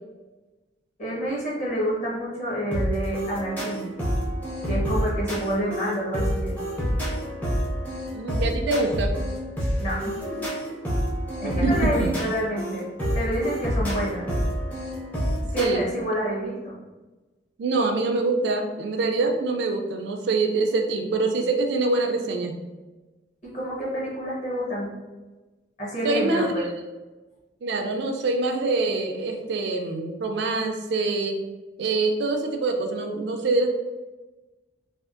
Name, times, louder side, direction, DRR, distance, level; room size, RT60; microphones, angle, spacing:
voice 1, 1.0-3.9 4.7-6.5 9.8-10.5 11.4-12.9 13.1-14.3 15.5-16.7 23.4-24.9 25.8-26.7, equal, 35° left, -6 dB, 1.1 m, -28 dB
sound 1, 2.7-15.7, equal, 10° left, 0.6 m, -28 dB
voice 2, 8.1-9.1 11.4-12.1 15.6-15.8 17.6-22.6 26.0-26.7 27.6-31.4 31.8-33.7, right 3 dB, 60° right, 4 dB, 0.3 m, -25 dB
3.4 x 2.4 x 2.5 m, 1.2 s
head